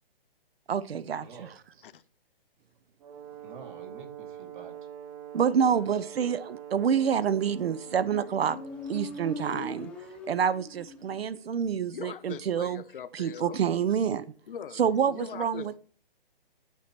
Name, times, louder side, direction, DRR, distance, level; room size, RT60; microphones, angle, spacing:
voice 1, 0.7-1.6 5.3-8.6 8.9-9.9 10.3-12.8 13.1-14.3 14.8-15.8, right 7 dB, 85° right, 0.6 m, -27 dB
voice 2, 1.2-1.8 3.4-4.7 5.6-5.8, right 5 dB, 55° right, 2.2 m, -47 dB
Brass instrument, 3.0-9.0, right 9 dB, 35° right, 1.3 m, -45 dB
Motorcycle, 7.7-11.3, left 2 dB, 5° left, 0.7 m, -41 dB
voice 3, 11.9-13.6 14.5-14.8 15.1-15.8, left 8 dB, 60° left, 0.8 m, -41 dB
11.5 x 4.5 x 4.5 m
hypercardioid pair, 145°, 30 cm